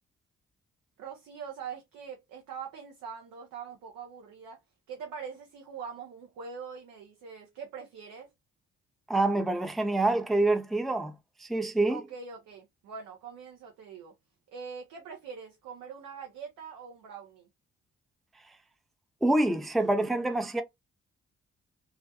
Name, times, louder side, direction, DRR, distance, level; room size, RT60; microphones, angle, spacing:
voice 1, 1.0-4.6 4.9-8.3 11.9-14.1 14.5-17.5, right 6 dB, 70° right, 0.7 m, -43 dB
voice 2, 9.1-11.1 11.4-12.0 19.2-20.6, right 2 dB, ahead, 0.4 m, -26 dB
2.4 x 2.1 x 2.6 m
hypercardioid pair, 40°, 33 cm